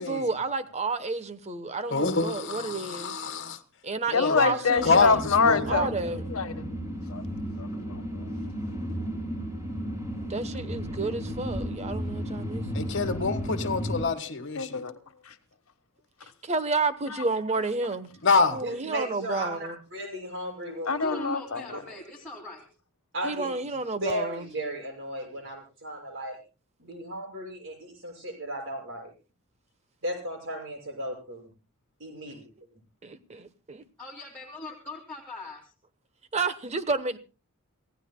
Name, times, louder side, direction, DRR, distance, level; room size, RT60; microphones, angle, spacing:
voice 1, 0.0-3.2 3.8-5.2 5.7-6.2 10.3-12.9 16.4-18.1 18.5-19.8 23.2-24.5 33.0-33.8 36.3-37.2, right 3 dB, 30° right, 1.0 m, -31 dB
voice 2, 1.9-3.6 4.1-4.5 4.8-5.8 12.7-14.8 18.2-18.6, left 4 dB, 55° left, 1.4 m, -26 dB
voice 3, 4.1-5.9 6.3-6.7 7.1-7.2 7.6-8.3 14.6-14.9 20.9-21.8, left 4 dB, 90° left, 1.3 m, -26 dB
sound 1, 4.8-14.1, equal, 15° right, 4.8 m, -34 dB
voice 4, 18.6-21.2 21.7-21.8 23.1-23.5 24.0-26.4 26.8-29.1 30.0-31.5 32.0-32.5, right 1 dB, 60° right, 6.3 m, -35 dB
voice 5, 21.0-22.6 34.0-35.6, left 1 dB, 5° left, 2.5 m, -40 dB
27.5 x 16.0 x 2.2 m
head